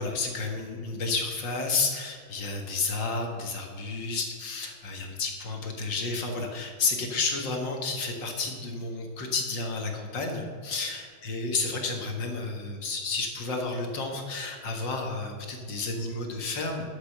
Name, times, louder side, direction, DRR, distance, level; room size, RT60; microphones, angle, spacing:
voice 1, 0.0-16.9, left 3 dB, 60° left, 2 dB, 2.2 m, -31 dB
12.0 x 8.0 x 6.7 m, 2.1 s
omnidirectional pair, 2.4 m